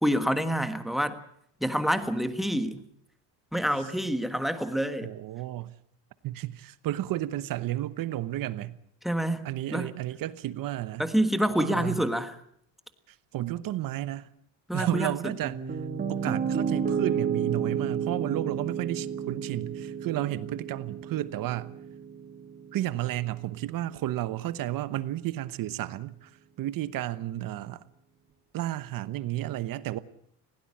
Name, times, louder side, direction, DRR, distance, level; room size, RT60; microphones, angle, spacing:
voice 1, 0.0-1.2 1.6-2.8 3.5-5.1 9.0-9.4 9.7-9.9 11.0-12.3 14.7-15.3, equal, ahead, 1.5 m, -27 dB
voice 2, 5.0-5.7 6.2-8.8 9.4-11.1 11.6-12.0 13.3-14.3 14.7-15.6 16.1-21.7 22.7-26.3 26.6-27.8 28.5-30.0, right 14 dB, 55° right, 1.1 m, -32 dB
Piano, 15.4-23.5, right 7 dB, 25° right, 1.5 m, -32 dB
20.0 x 17.0 x 8.7 m
cardioid pair, 130°, 39 cm